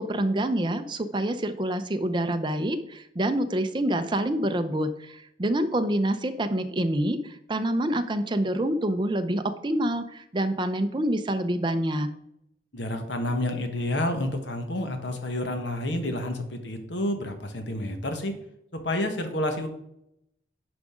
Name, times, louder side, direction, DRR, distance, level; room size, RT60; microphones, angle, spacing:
voice 1, 0.0-12.1, right 1 dB, 25° right, 8 dB, 0.6 m, -27 dB
voice 2, 12.7-18.3 18.7-19.7, left 1 dB, 65° left, 6 dB, 1.3 m, -29 dB
9.8 x 5.1 x 3.7 m, 0.78 s
head